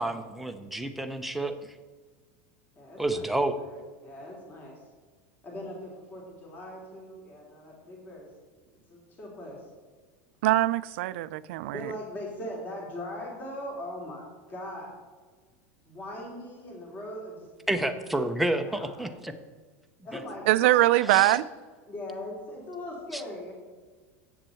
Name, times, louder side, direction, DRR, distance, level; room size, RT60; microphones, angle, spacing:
voice 1, 0.0-1.6 3.0-3.5 17.7-19.3 21.1-21.4 23.1-23.2, right 1 dB, ahead, 6 dB, 0.7 m, -29 dB
voice 2, 2.7-4.8 5.4-8.3 8.6-9.7 11.7-14.9 15.8-18.0 18.6-19.1 20.0-20.8 21.0-21.2 21.9-23.5, left 1 dB, 25° left, -2 dB, 3.1 m, -40 dB
voice 3, 10.4-11.9 20.5-21.4, right 16 dB, 70° right, 15 dB, 0.5 m, -23 dB
8.1 x 7.4 x 7.8 m, 1.4 s
supercardioid pair, 155°, 7 cm